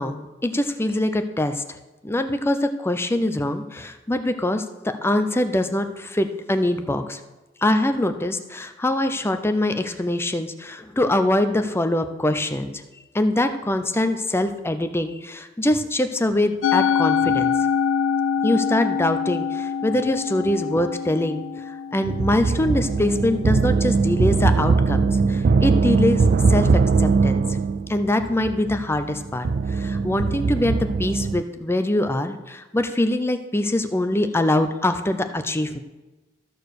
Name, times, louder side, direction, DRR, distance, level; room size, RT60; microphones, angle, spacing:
voice 1, 0.0-1.6 2.0-4.6 5.0-7.2 7.6-12.8 13.1-17.5 18.4-21.4 21.9-26.2 26.5-26.7 27.0-27.4 27.9-35.8, left 1 dB, 15° left, 8 dB, 0.5 m, -23 dB
Musical instrument, 16.6-23.0, left 7 dB, 80° left, 0.4 m, -24 dB
sound 1, 22.0-31.4, right 4 dB, 45° right, 0.3 m, -21 dB
14.0 x 4.6 x 6.5 m, 1.1 s
head